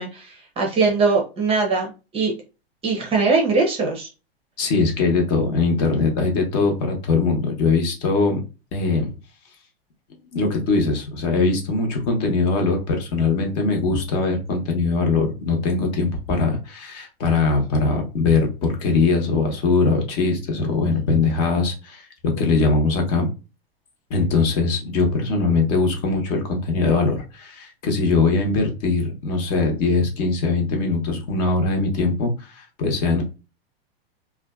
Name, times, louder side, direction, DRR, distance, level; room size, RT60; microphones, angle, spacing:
voice 1, 0.0-2.3 2.8-4.1, right 4 dB, 20° right, 1 dB, 0.6 m, -21 dB
voice 2, 4.6-8.4 8.7-9.1 10.1-23.3 24.1-33.2, left 3 dB, 45° left, 3 dB, 0.9 m, -21 dB
2.5 x 2.2 x 2.3 m, 0.30 s
hypercardioid pair, 130°, 31 cm